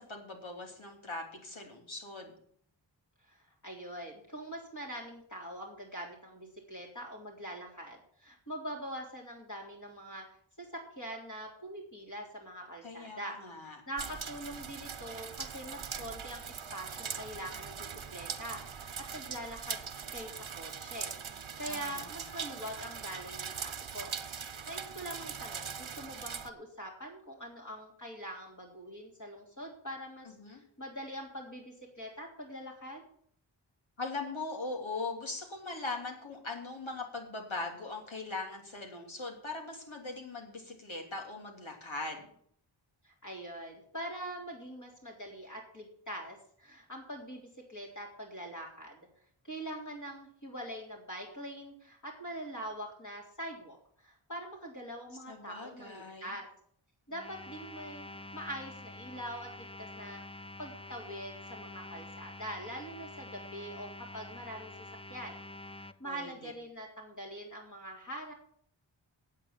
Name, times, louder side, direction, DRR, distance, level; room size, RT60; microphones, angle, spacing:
voice 1, 0.0-2.3 12.8-13.8 21.7-22.4 30.2-30.6 34.0-42.2 55.3-56.3 66.0-66.5, left 3 dB, 75° left, 1 dB, 3.2 m, -40 dB
voice 2, 3.3-10.3 10.6-19.8 20.1-24.1 24.7-33.0 43.0-49.0 49.4-56.5 57.1-58.1 58.3-60.2 60.6-64.7 65.1-65.4 65.8-68.3, right 1 dB, 40° left, -2 dB, 3.6 m, -43 dB
sound 1, 14.0-26.5, right 6 dB, 80° right, 1.1 m, -41 dB
sound 2, 57.1-65.9, left 2 dB, 10° left, 0.7 m, -47 dB
8.8 x 8.6 x 8.8 m, 0.63 s
wide cardioid pair, 50°, 47 cm